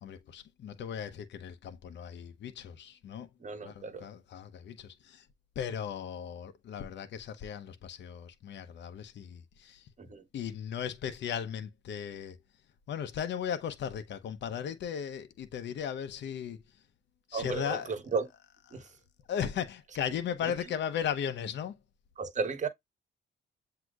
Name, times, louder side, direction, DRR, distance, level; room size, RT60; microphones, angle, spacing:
voice 1, 0.0-3.3 3.6-5.3 5.6-9.9 10.3-12.4 12.9-16.6 17.3-17.9 19.3-21.8, left 8 dB, 65° left, 0.9 m, -37 dB
voice 2, 3.4-4.1 10.0-10.2 17.3-18.3 18.7-18.9 20.4-20.5 22.2-22.7, right 4 dB, 40° right, 1.3 m, -34 dB
7.6 x 2.9 x 2.4 m
cardioid pair, 90°, 20 cm